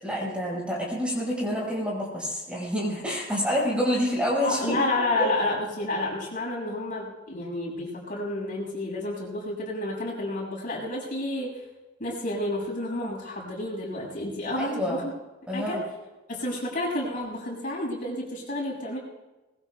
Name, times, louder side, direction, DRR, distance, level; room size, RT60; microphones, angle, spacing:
voice 1, 0.0-4.8 5.2-5.3 14.6-15.0 15.5-15.8, equal, 5° right, -5 dB, 5.4 m, -27 dB
voice 2, 4.4-11.6 12.0-15.0 15.5-15.8 16.3-19.0, left 2 dB, 45° left, -3 dB, 6.9 m, -30 dB
24.0 x 21.5 x 2.3 m, 1.1 s
head